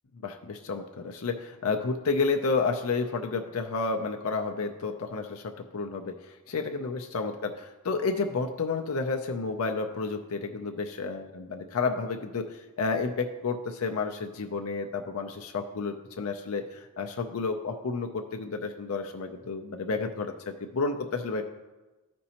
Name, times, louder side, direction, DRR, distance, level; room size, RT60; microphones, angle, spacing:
voice 1, 0.2-21.4, left 4 dB, 70° left, 4 dB, 0.5 m, -31 dB
13.5 x 5.2 x 2.9 m, 1.2 s
head